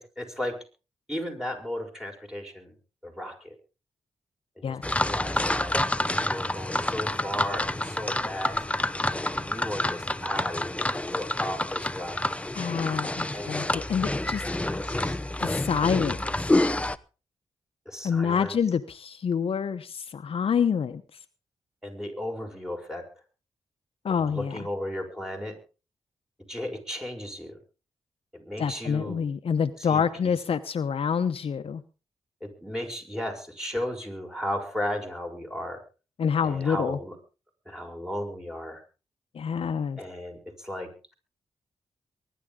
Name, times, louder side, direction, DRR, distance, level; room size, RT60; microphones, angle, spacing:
voice 1, 0.2-0.6 1.1-2.7 3.0-3.5 4.6-8.6 9.3-12.2 13.3-13.8 14.4-15.2 17.9-18.5 21.8-23.0 24.3-25.6 26.5-27.5 28.3-29.2 29.8-30.3 32.4-35.8 36.4-37.1 37.7-38.8 40.0-41.1, left 1 dB, 5° right, 3 dB, 6.3 m, -35 dB
sound 1, 4.8-17.0, left 1 dB, 10° left, 0.8 m, -28 dB
voice 2, 12.5-14.5 15.4-16.2 18.0-21.0 24.0-24.7 28.6-31.8 36.2-37.0 39.3-40.0, left 7 dB, 65° left, 9 dB, 1.0 m, -27 dB
23.0 x 11.5 x 3.8 m, 0.34 s
cardioid pair, 60°, 11 cm